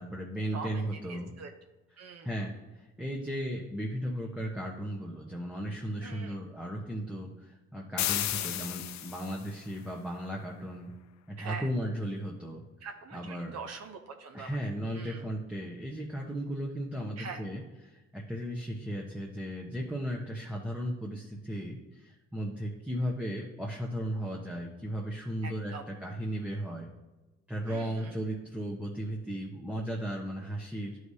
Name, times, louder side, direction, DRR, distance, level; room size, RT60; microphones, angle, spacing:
voice 1, 0.0-1.3 2.2-10.9 11.3-12.6 13.1-13.6 14.3-26.9 27.5-31.0, equal, 5° right, -2 dB, 0.9 m, -36 dB
voice 2, 0.5-1.5 2.0-2.3 6.0-6.4 8.4-8.7 11.4-11.7 12.8-14.6 14.9-15.3 17.2-17.4 25.4-25.8 27.7-28.2, right 5 dB, 60° right, 5 dB, 0.8 m, -43 dB
sound 1, 8.0-9.5, left 13 dB, 65° left, 0.5 m, -33 dB
11.0 x 4.8 x 2.8 m, 1.1 s
cardioid pair, 90°, 30 cm